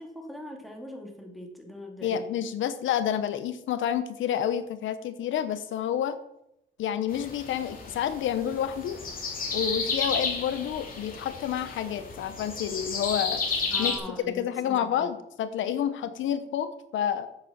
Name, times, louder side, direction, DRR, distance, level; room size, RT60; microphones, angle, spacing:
voice 1, 0.0-2.3 13.7-15.1, left 1 dB, ahead, 1 dB, 2.9 m, -41 dB
voice 2, 2.0-6.2 6.8-9.0 9.5-13.4 13.8-13.9 14.3-17.3, left 9 dB, 75° left, 12 dB, 0.9 m, -29 dB
sound 1, 7.1-14.0, left 4 dB, 45° left, 3.2 m, -32 dB
8.5 x 7.5 x 7.3 m, 0.82 s
cardioid pair, 90°, 20 cm